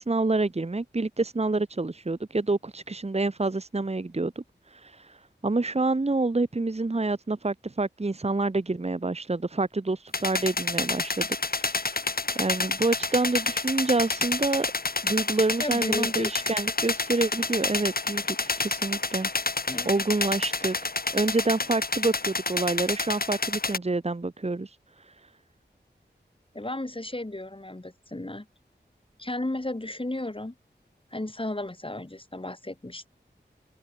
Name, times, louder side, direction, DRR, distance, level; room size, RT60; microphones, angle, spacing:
voice 1, 0.0-4.4 4.8-5.2 5.4-11.3 11.6-12.0 12.3-14.7 15.0-19.3 19.8-20.7 21.1-24.7, right 3 dB, 35° right, 1.2 m, -27 dB
sound 1, 10.1-23.8, left 3 dB, 55° left, 2.2 m, -29 dB
voice 2, 15.6-16.6 19.7-19.9 26.5-28.5 29.2-30.5 31.1-33.0, left 1 dB, 30° left, 6.5 m, -34 dB
open air
wide cardioid pair, 55°, 19 cm